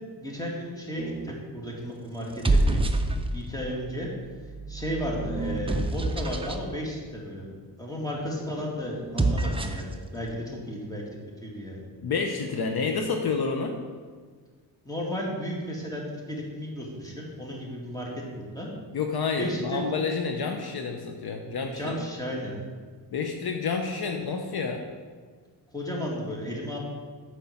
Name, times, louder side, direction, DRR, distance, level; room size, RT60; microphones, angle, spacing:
voice 1, 0.2-2.8 3.3-4.1 4.7-7.5 7.8-11.0 11.4-11.8 14.8-18.7 19.4-19.8 21.8-22.5 25.7-26.8, equal, 10° left, -2 dB, 2.2 m, -34 dB
sound 1, 1.0-1.4 2.2-3.6 4.3-6.6 9.0-9.9, right 2 dB, 15° right, 0.6 m, -27 dB
voice 2, 12.0-13.7 18.9-22.0 23.1-24.8, left 5 dB, 60° left, 4 dB, 0.8 m, -29 dB
8.7 x 4.6 x 7.1 m, 1.5 s
wide cardioid pair, 110°, 44 cm